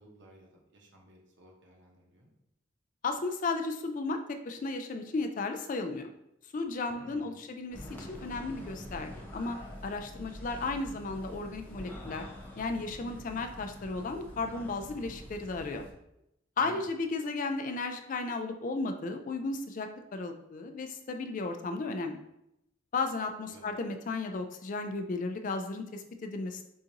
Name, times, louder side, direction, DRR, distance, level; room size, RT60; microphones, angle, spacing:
voice 1, 0.0-2.3 6.9-7.4 16.6-16.8 23.5-23.6, right 1 dB, 65° right, -1 dB, 1.0 m, -55 dB
voice 2, 3.0-4.2 4.4-6.1 6.5-9.6 9.8-12.3 12.6-15.8 16.6-22.2 22.9-26.7, left 3 dB, 40° left, 6 dB, 0.3 m, -34 dB
sound 1, 7.7-15.9, left 1 dB, 10° left, 0.7 m, -46 dB
6.2 x 2.5 x 2.9 m, 0.83 s
head